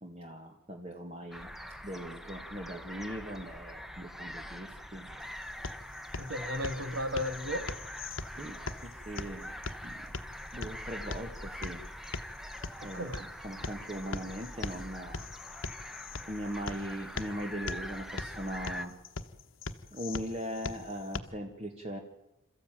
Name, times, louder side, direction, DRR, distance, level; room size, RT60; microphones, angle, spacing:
voice 1, 0.0-1.5 1.8-5.1 8.3-9.5 9.8-10.0 10.5-11.9 12.8-13.1 13.4-15.3 16.3-18.9 19.9-22.0, equal, 30° right, 3 dB, 1.6 m, -40 dB
sound 1, 1.3-18.9, equal, ahead, 1.0 m, -44 dB
sound 2, 5.2-21.2, left 3 dB, 75° left, 1.1 m, -42 dB
voice 2, 6.2-7.7 12.8-13.3, left 1 dB, 65° right, 8 dB, 2.3 m, -35 dB
27.5 x 14.0 x 9.1 m, 0.96 s
head